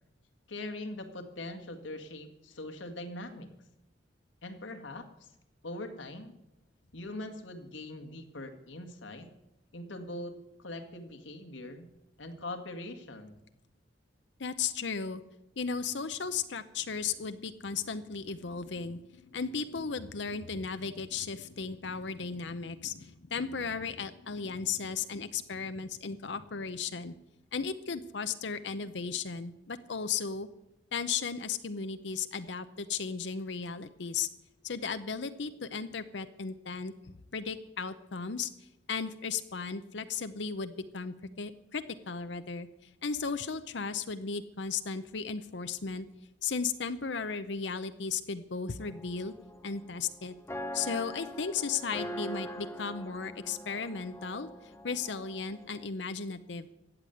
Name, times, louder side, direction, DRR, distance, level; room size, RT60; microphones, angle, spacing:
voice 1, 0.5-3.5 4.4-5.1 5.6-6.3 6.9-9.3 9.7-11.9 12.2-13.4, left 1 dB, 90° left, 5 dB, 1.9 m, -42 dB
voice 2, 14.4-15.2 15.6-27.1 27.5-30.5 30.9-34.3 34.6-36.9 37.3-38.5 38.9-46.1 46.4-49.3 49.6-50.3 50.7-54.5 54.8-56.7, left 5 dB, 65° left, 11 dB, 0.7 m, -35 dB
sound 1, 48.8-55.9, equal, 15° left, 0.8 m, -43 dB
14.5 x 8.3 x 9.2 m, 0.92 s
head